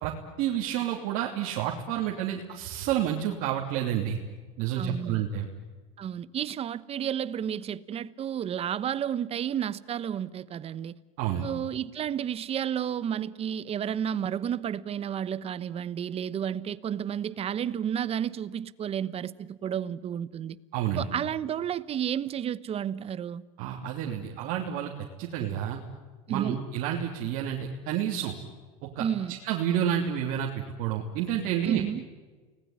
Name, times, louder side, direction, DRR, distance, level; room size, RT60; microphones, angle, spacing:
voice 1, 0.4-4.2 4.6-5.5 11.2-11.5 20.7-21.0 23.6-24.9 25.2-25.8 26.3-27.6 27.9-28.3 28.8-31.8, right 10 dB, 65° right, 3.1 m, -29 dB
voice 2, 4.8-5.2 6.0-10.9 11.4-20.6 21.0-23.4 26.3-26.6 29.0-29.4 31.6-32.0, right 9 dB, 35° right, 1.1 m, -31 dB
30.0 x 19.5 x 9.7 m
supercardioid pair, 110°, 17 cm